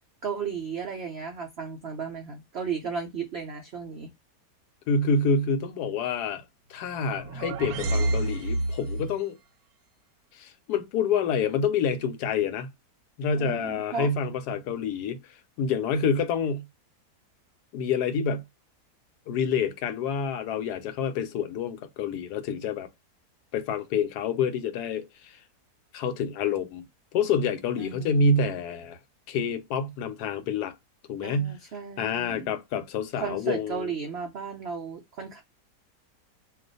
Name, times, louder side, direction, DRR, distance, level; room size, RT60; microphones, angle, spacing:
voice 1, 0.2-4.1 13.4-14.1 27.8-28.6 31.2-32.5 33.2-35.4, right 6 dB, 90° right, 0.5 m, -35 dB
voice 2, 4.9-6.4 6.7-9.4 10.3-12.7 13.2-16.6 17.7-18.4 19.3-22.9 23.5-25.4 25.9-26.8 27.1-29.0 29.3-30.7 31.1-31.5 32.0-33.9, left 5 dB, 75° left, 1.1 m, -27 dB
sound 1, 6.9-9.2, right 2 dB, 70° right, 1.0 m, -29 dB
2.4 x 2.4 x 3.9 m
omnidirectional pair, 1.8 m